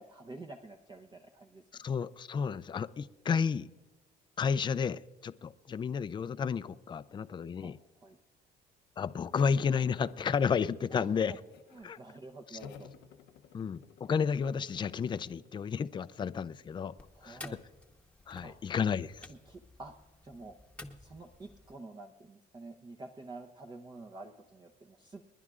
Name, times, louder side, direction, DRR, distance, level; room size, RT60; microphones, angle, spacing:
voice 1, 0.0-1.6 7.6-7.7 8.0-8.2 10.9-11.1 11.7-12.9 17.1-17.6 18.4-18.6 19.3-19.9 20.2-20.5 21.0-25.2, right 2 dB, 25° right, 0.8 m, -49 dB
voice 2, 1.8-3.7 4.4-7.8 9.0-11.3 11.8-12.0 13.5-16.9 17.2-17.4 18.3-19.3, left 6 dB, 25° left, 0.4 m, -32 dB
sound 1, 9.3-10.8 11.2-11.9 12.6-15.9, left 7 dB, 80° left, 0.8 m, -53 dB
sound 2, 17.0-21.8, left 2 dB, 5° left, 1.1 m, -52 dB
29.5 x 11.0 x 2.5 m
cardioid pair, 110°, 17 cm